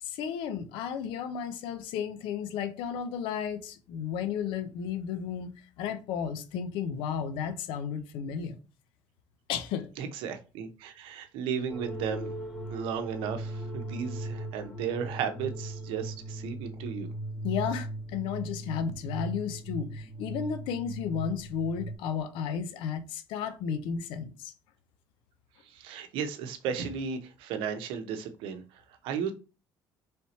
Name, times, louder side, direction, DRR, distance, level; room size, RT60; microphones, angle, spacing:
voice 1, 0.0-8.6 9.5-9.9 17.4-24.5, left 7 dB, 80° left, 0.6 m, -33 dB
voice 2, 10.0-12.3 12.7-17.1 25.6-29.3, right 7 dB, 80° right, 0.7 m, -35 dB
sound 1, 11.7-22.0, right 1 dB, 10° left, 0.9 m, -38 dB
3.3 x 2.8 x 4.2 m
supercardioid pair, 95°, 9 cm